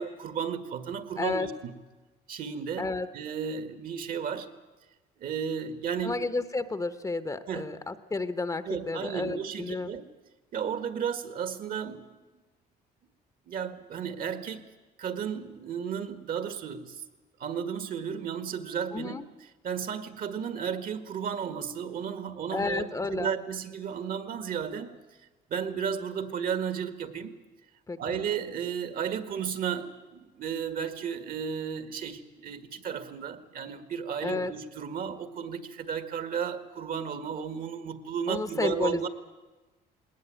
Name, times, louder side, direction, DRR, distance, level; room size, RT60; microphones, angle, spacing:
voice 1, 0.0-1.7 2.3-4.5 5.2-6.2 7.5-7.7 8.7-10.0 10.5-12.1 13.5-14.6 15.0-17.0 17.4-19.2 19.6-24.9 25.5-27.3 28.0-39.1, right 7 dB, 55° right, 10 dB, 1.8 m, -33 dB
voice 2, 1.2-1.5 2.8-3.1 6.0-9.9 18.9-19.3 22.5-23.3 27.9-28.2 34.2-34.5 38.3-39.1, left 3 dB, 20° left, 11 dB, 1.0 m, -31 dB
20.0 x 19.0 x 9.2 m, 1.2 s
cardioid pair, 110°, 17 cm